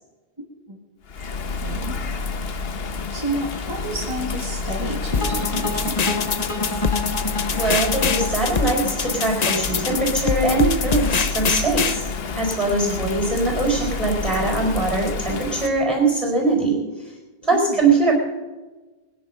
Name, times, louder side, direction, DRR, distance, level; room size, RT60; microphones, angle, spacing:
voice 1, 0.4-0.8 1.5-1.9 3.1-6.5 12.7-13.2 17.5-17.8, right 1 dB, 25° right, -1 dB, 1.7 m, -31 dB
Bird vocalization bird call bird song / Rain, 1.0-15.7, left 4 dB, 65° left, 1.2 m, -29 dB
sound 1, 5.1-12.0, left 6 dB, 45° left, 0.7 m, -24 dB
sound 2, 5.2-10.3, left 2 dB, 30° left, 1.7 m, -29 dB
voice 2, 7.5-12.0 12.3-16.8 17.4-18.1, right 3 dB, ahead, 0 dB, 4.3 m, -21 dB
20.5 x 10.0 x 5.5 m, 1.2 s
omnidirectional pair, 1.1 m